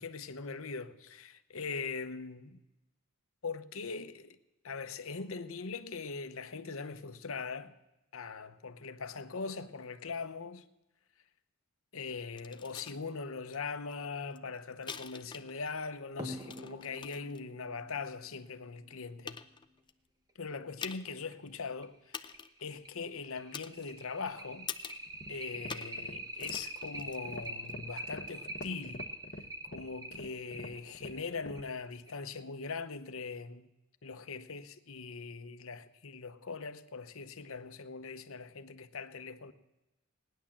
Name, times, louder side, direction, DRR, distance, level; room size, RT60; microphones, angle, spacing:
voice 1, 0.0-2.6 3.4-4.4 4.6-7.7 8.1-10.6 11.9-19.4 20.4-22.3 22.6-24.7 25.3-29.1 29.6-33.7 34.0-39.5, left 4 dB, 70° left, 0.9 m, -41 dB
sound 1, 12.4-13.0 13.5-13.6 13.9-15.8 16.1-17.4 18.1-18.2 18.8-18.9 19.3-19.9 20.8-21.2 21.5-21.6 22.1-22.6 23.5-24.2 24.7-25.1 25.7-26.0 26.3-27.7 28.6-28.7, left 6 dB, 20° left, 0.5 m, -45 dB
sound 2, 16.2-19.3 20.8-20.9 21.3-21.4 21.8-21.9 22.3-32.4, right 1 dB, 20° right, 1.2 m, -45 dB
sound 3, 25.1-31.7, left 1 dB, 40° left, 0.9 m, -47 dB
18.0 x 10.5 x 7.3 m
head